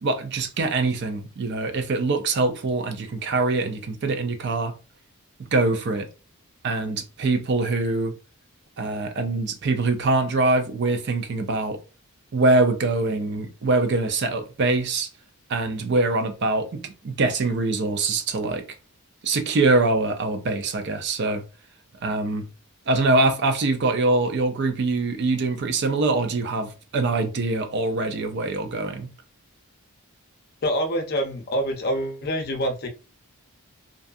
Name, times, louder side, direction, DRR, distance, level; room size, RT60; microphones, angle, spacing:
voice 1, 0.0-4.7 5.5-6.1 6.6-8.1 8.8-11.8 12.3-15.1 15.5-18.6 19.2-21.4 22.0-22.5 22.9-29.1, right 2 dB, 50° right, 0.4 m, -23 dB
voice 2, 30.6-32.9, equal, 45° left, 0.5 m, -26 dB
2.6 x 2.3 x 2.4 m
head